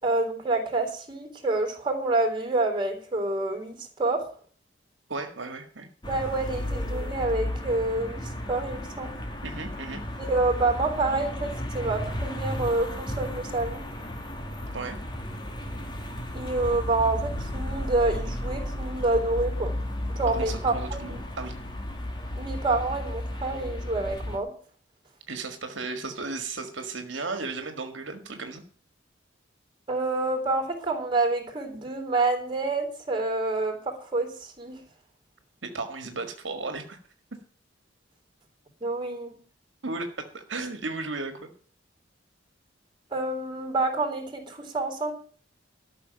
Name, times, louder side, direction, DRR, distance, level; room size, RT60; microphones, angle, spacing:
voice 1, 0.0-4.3 6.1-9.2 10.3-13.8 16.3-19.7 20.1-21.2 22.4-24.5 29.9-34.8 38.8-39.4 43.1-45.1, right 2 dB, 25° right, 4 dB, 3.7 m, -27 dB
voice 2, 5.1-5.9 9.4-10.0 14.7-15.0 20.3-21.6 25.3-28.6 35.6-37.0 39.8-41.5, right 3 dB, 70° right, 6 dB, 1.8 m, -35 dB
sound 1, 6.0-24.4, left 1 dB, 25° left, 2.3 m, -34 dB
13.0 x 6.4 x 8.8 m, 0.43 s
head